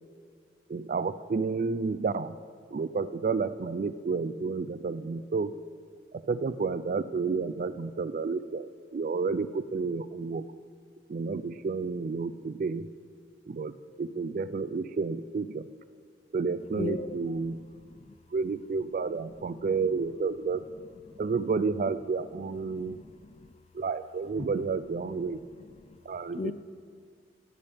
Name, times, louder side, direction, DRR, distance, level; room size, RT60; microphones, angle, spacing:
voice 1, 0.7-2.4 2.7-5.5 6.1-10.4 11.1-12.9 13.5-13.7 14.0-15.7 16.3-17.6 18.3-20.6 21.2-23.0 23.7-25.4 26.1-26.5, right 4 dB, 45° right, 14 dB, 0.3 m, -31 dB
voice 2, 16.8-17.2 17.9-18.2 19.5-19.6 21.1-21.2 22.6-23.5 24.4-24.5 25.5-26.0 26.4-26.5, left 3 dB, 35° left, 12 dB, 0.3 m, -38 dB
16.0 x 6.9 x 3.4 m, 2.2 s
head